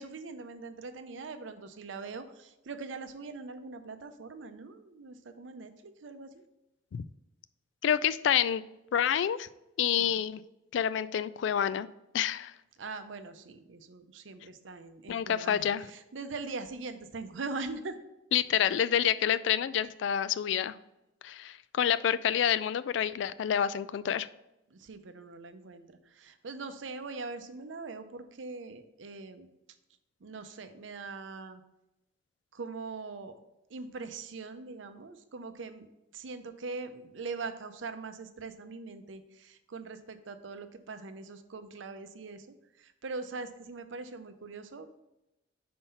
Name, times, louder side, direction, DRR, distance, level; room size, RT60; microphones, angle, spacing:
voice 1, 0.0-6.4 10.0-10.2 12.8-18.0 24.7-29.5 30.2-31.6 32.5-33.3 33.7-35.9 36.1-45.0, right 4 dB, 85° right, 9 dB, 0.6 m, -42 dB
voice 2, 7.8-8.6 8.9-9.5 9.8-10.4 10.7-11.9 12.1-12.5 15.1-15.9 18.3-20.8 21.2-24.3, left 9 dB, 75° left, 16 dB, 0.3 m, -28 dB
5.5 x 4.3 x 5.6 m, 0.91 s
head